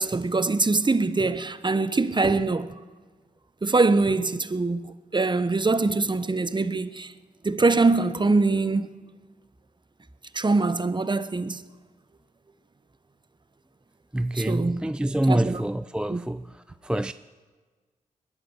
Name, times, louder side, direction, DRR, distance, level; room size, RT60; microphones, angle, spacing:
voice 1, 0.0-2.7 3.6-7.1 7.4-8.9 10.3-11.6 14.3-14.9 15.3-15.6 16.1-16.2, right 3 dB, 30° right, 0.9 m, -23 dB
voice 2, 14.1-16.5 16.8-17.1, right 1 dB, 5° right, 0.4 m, -26 dB
20.0 x 11.0 x 6.4 m
supercardioid pair, 45°, 16 cm